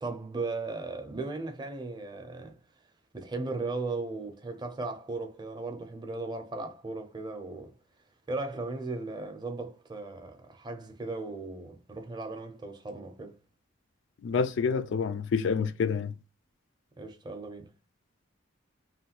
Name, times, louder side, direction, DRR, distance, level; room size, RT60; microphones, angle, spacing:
voice 1, 0.0-2.6 3.1-7.7 8.3-13.4 17.0-17.7, right 3 dB, 20° right, 0.6 m, -37 dB
voice 2, 14.2-16.1, left 5 dB, 65° left, 0.3 m, -28 dB
3.0 x 2.2 x 2.9 m
head